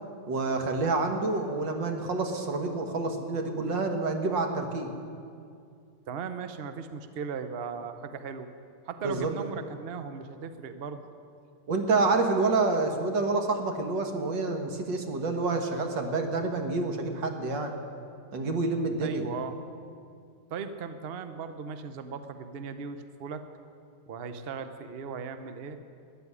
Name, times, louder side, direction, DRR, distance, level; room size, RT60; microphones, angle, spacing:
voice 1, 0.3-4.9 9.0-9.3 11.7-17.7 18.3-19.3, right 3 dB, 60° right, 4 dB, 2.1 m, -28 dB
voice 2, 6.1-8.5 8.9-11.0 19.0-19.6 20.5-23.4 24.1-25.8, right 6 dB, 80° right, 9 dB, 0.5 m, -37 dB
14.0 x 10.5 x 9.7 m, 2.4 s
omnidirectional pair, 2.3 m